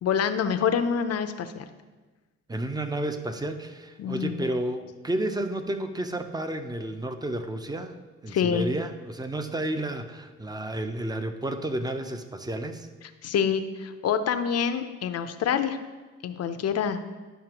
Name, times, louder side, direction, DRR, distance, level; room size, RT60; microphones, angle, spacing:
voice 1, 0.0-1.6 4.0-4.4 8.3-8.7 13.2-15.8 16.2-17.0, left 7 dB, 55° left, 9 dB, 0.7 m, -26 dB
voice 2, 2.5-7.9 8.2-12.9, right 1 dB, 15° right, 8 dB, 0.6 m, -31 dB
11.0 x 5.8 x 3.0 m, 1.3 s
cardioid pair, 90°, 30 cm